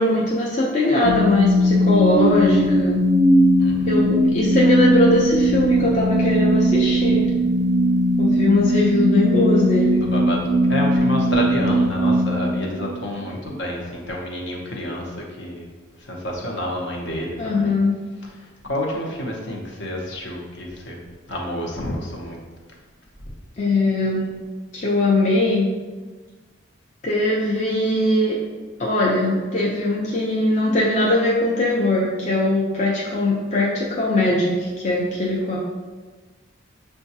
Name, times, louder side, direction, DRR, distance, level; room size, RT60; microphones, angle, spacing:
voice 1, 0.0-3.0 3.9-7.3 8.2-10.0 17.4-17.9 23.6-24.3 24.7-25.7 27.0-28.4 28.8-35.6, left 2 dB, 35° left, -5 dB, 0.5 m, -20 dB
sound 1, 1.0-13.2, equal, 45° right, 0.4 m, -19 dB
voice 2, 3.6-4.0 9.9-15.7 16.0-17.8 18.2-21.0 21.3-22.4, equal, 65° left, -1 dB, 0.8 m, -29 dB
6.6 x 2.3 x 2.8 m, 1.3 s
head